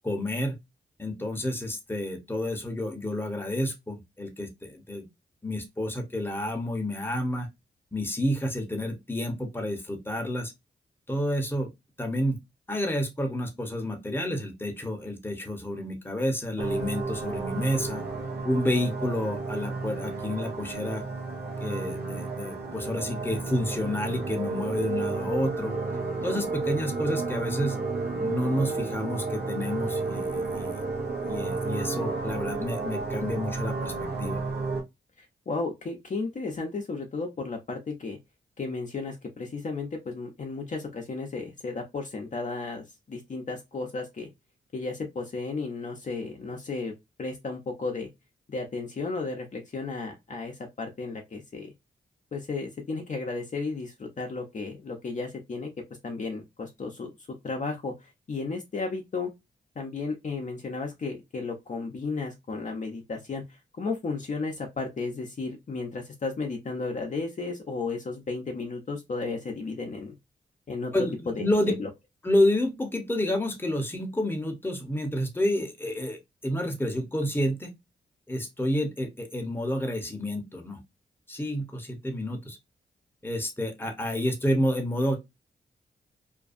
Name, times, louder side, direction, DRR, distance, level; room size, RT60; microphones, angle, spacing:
voice 1, 0.0-0.5 1.0-5.1 5.4-7.5 7.9-10.5 11.1-11.7 12.0-12.4 12.7-18.0 18.4-21.0 21.6-25.8 26.2-27.8 28.2-30.8 31.3-33.9 34.2-34.4 70.9-71.7 72.2-77.7 78.3-80.8 81.3-82.6 83.2-85.2, left 1 dB, 10° left, 0.8 m, -29 dB
sound 1, 16.6-34.8, right 3 dB, 60° right, 0.8 m, -32 dB
voice 2, 35.2-38.2 38.6-44.3 44.7-46.9 47.2-48.1 48.5-51.7 52.3-55.7 56.0-59.3 59.8-70.1 70.7-70.9 71.3-71.5 71.8-71.9, left 3 dB, 45° left, 0.6 m, -34 dB
2.5 x 2.3 x 2.4 m
cardioid pair, 60°, 18 cm